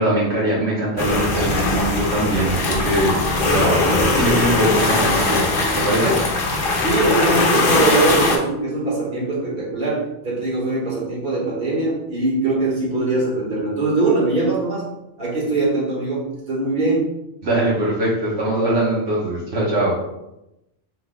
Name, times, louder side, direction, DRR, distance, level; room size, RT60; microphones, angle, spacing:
voice 1, 0.0-3.1 3.4-6.2 17.4-19.9, right 1 dB, 80° right, -6 dB, 1.3 m, -21 dB
sound 1, 1.0-8.4, left 2 dB, 60° left, 0.9 m, -20 dB
voice 2, 6.7-14.9 15.2-17.1, right 2 dB, 60° right, -5 dB, 1.8 m, -22 dB
5.8 x 3.8 x 2.2 m, 0.88 s
omnidirectional pair, 1.1 m